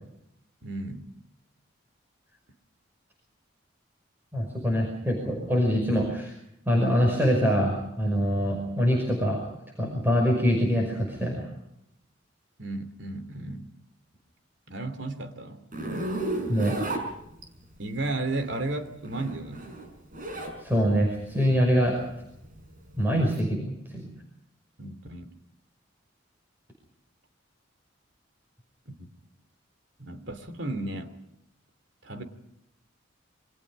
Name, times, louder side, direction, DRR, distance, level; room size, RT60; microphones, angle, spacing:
voice 1, 0.6-1.1 12.6-13.7 14.7-15.6 17.8-19.7 24.8-25.3 28.9-29.1 30.0-31.2 32.0-32.2, right 2 dB, 70° right, 10 dB, 2.8 m, -34 dB
voice 2, 4.3-6.3 6.7-9.4 9.8-11.5 16.5-16.8 20.6-22.0 23.0-24.1, equal, 10° right, 0 dB, 5.6 m, -24 dB
Zipper (clothing), 15.7-17.7 18.9-20.6 21.0-23.4, right 1 dB, 45° right, 5.9 m, -33 dB
28.0 x 24.0 x 5.3 m, 0.80 s
head